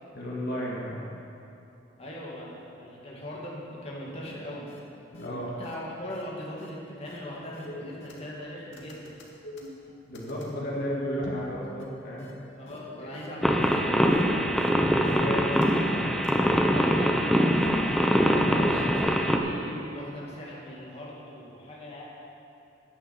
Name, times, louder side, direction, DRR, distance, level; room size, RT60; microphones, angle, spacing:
voice 1, 0.2-1.1 5.1-5.5 10.1-12.3 13.0-13.2 14.9-15.4, equal, 55° left, -5 dB, 2.2 m, -33 dB
voice 2, 2.0-4.7 5.2-9.2 12.6-13.9 16.4-22.0, left 1 dB, 35° left, -5 dB, 2.4 m, -39 dB
sound 1, 4.3-4.4 4.7-4.8 5.1-5.3 5.6-5.7 6.1-6.2 6.6-6.7 7.0-7.2 7.5-8.4 8.7-10.5 11.2-11.5 11.8-11.9 12.2-12.3 12.7-12.8 13.1-13.3 13.6-13.7 14.1-14.2 14.6-14.7 15.0-15.9 16.2-16.3, left 1 dB, 90° left, 2.0 m, -44 dB
sound 2, 13.4-19.4, equal, ahead, 0.8 m, -23 dB
11.0 x 9.0 x 7.2 m, 2.8 s
head